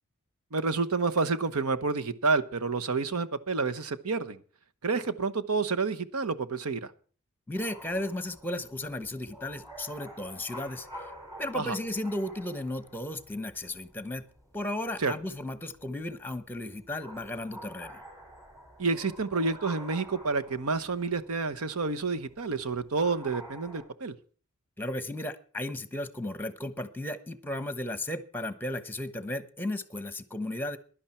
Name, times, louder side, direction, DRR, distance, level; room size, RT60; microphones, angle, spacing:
voice 1, 0.5-4.4 4.8-6.9 11.5-11.8 15.0-15.1 18.8-24.1, right 4 dB, 75° right, 11 dB, 1.0 m, -29 dB
voice 2, 7.5-10.9 11.4-14.2 14.5-18.0 24.8-30.8, left 1 dB, 10° left, 12 dB, 1.1 m, -35 dB
sound 1, 7.5-23.9, equal, 15° right, 5.5 m, -49 dB
16.0 x 11.5 x 4.4 m, 0.42 s
head